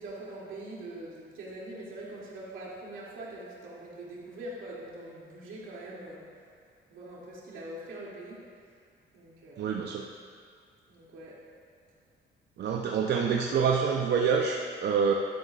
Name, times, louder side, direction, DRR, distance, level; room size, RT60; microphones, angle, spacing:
voice 1, 0.0-6.3 6.9-8.5 9.1-9.7 10.9-11.4, right 1 dB, 80° right, -6 dB, 2.7 m, -43 dB
voice 2, 9.6-10.1 12.6-15.1, right 6 dB, 60° right, 1 dB, 0.7 m, -26 dB
11.5 x 11.0 x 2.4 m, 2.2 s
cardioid pair, 90°, 20 cm